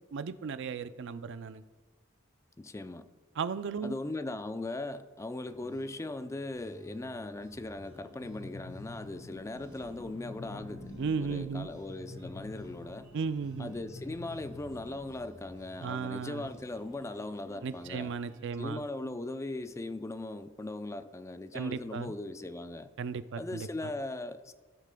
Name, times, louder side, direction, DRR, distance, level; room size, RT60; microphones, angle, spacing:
voice 1, 0.1-1.6 3.4-3.9 11.0-11.7 13.1-13.7 15.8-16.5 17.6-18.8 21.5-22.1 23.0-23.9, right 5 dB, 65° right, 12 dB, 0.4 m, -35 dB
voice 2, 2.6-3.0 3.8-10.9 11.2-13.1 13.6-18.1 18.6-22.9 23.4-24.5, left 2 dB, 15° left, 11 dB, 0.4 m, -39 dB
sound 1, 5.4-18.6, right 1 dB, 25° right, 2.7 m, -55 dB
sound 2, 8.2-15.2, left 2 dB, 60° left, 3.4 m, -48 dB
17.5 x 8.2 x 2.2 m, 1.4 s
head